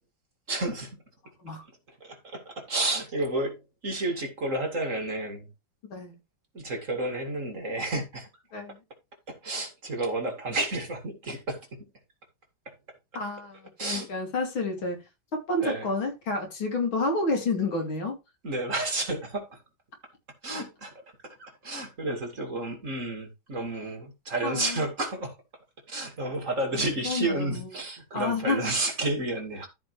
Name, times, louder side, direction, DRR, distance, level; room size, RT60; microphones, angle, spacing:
voice 1, 0.5-1.0 2.0-5.5 6.5-8.3 9.3-11.7 12.7-12.8 13.8-14.1 15.6-15.9 18.4-19.6 20.4-20.9 21.2-25.3 25.9-29.7, right 2 dB, 40° right, 2.5 m, -31 dB
voice 2, 13.1-15.0 15.3-18.2 24.4-24.8 27.0-27.7 28.1-28.6, left 2 dB, 80° left, 3.4 m, -29 dB
14.0 x 5.1 x 3.2 m
omnidirectional pair, 2.2 m